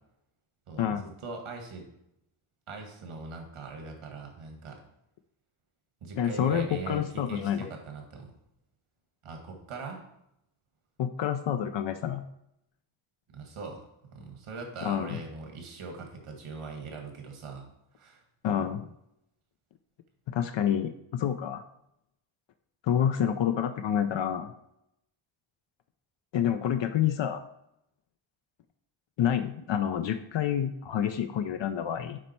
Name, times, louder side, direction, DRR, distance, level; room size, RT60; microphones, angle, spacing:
voice 1, 0.7-1.9 2.7-4.8 6.0-8.3 9.2-10.0 13.3-17.7 18.0-18.2, right 4 dB, 85° right, 3 dB, 1.9 m, -41 dB
voice 2, 6.2-7.7 11.0-12.2 14.8-15.2 18.4-18.9 20.3-21.6 22.8-24.5 26.3-27.4 29.2-32.2, left 9 dB, 65° left, 8 dB, 0.6 m, -28 dB
7.4 x 5.3 x 4.4 m, 0.82 s
wide cardioid pair, 160°, 49 cm